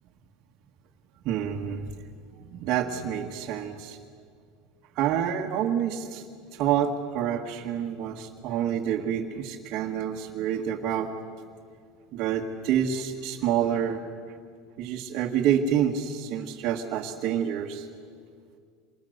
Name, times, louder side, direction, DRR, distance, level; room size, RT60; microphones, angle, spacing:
voice 1, 1.3-1.9 2.5-4.0 5.0-6.2 6.5-11.1 12.1-14.0 14.8-17.9, right 9 dB, 45° right, -1 dB, 1.8 m, -28 dB
29.0 x 27.0 x 6.7 m, 2.1 s
supercardioid pair, 155°, 0 cm